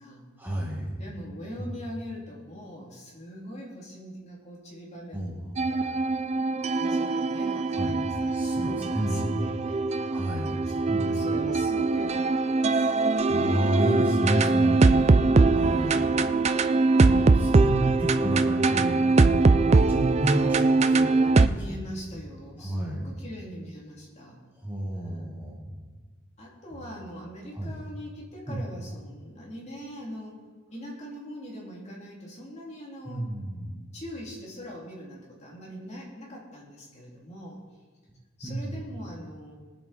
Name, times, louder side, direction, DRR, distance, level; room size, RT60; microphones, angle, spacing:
voice 1, 0.4-1.0 1.6-1.7 5.1-5.7 7.5-9.4 10.1-10.6 10.9-11.5 13.1-16.0 16.5-16.7 17.0-21.2 21.7-21.8 22.6-23.1 24.6-25.7 27.5-27.7 28.5-28.6 33.0-33.9 38.4-38.8, right 1 dB, 10° right, -3 dB, 1.6 m, -31 dB
voice 2, 0.9-5.2 5.7-6.0 6.6-8.1 8.6-9.9 10.6-12.9 14.3-14.6 15.8-16.2 16.9-17.0 21.5-24.4 26.4-30.4 30.7-33.3 33.9-37.6 38.4-39.5, equal, 35° left, -3 dB, 2.8 m, -42 dB
sound 1, 5.6-21.5, right 3 dB, 35° right, 0.4 m, -22 dB
21.0 x 7.8 x 4.2 m, 1.4 s
head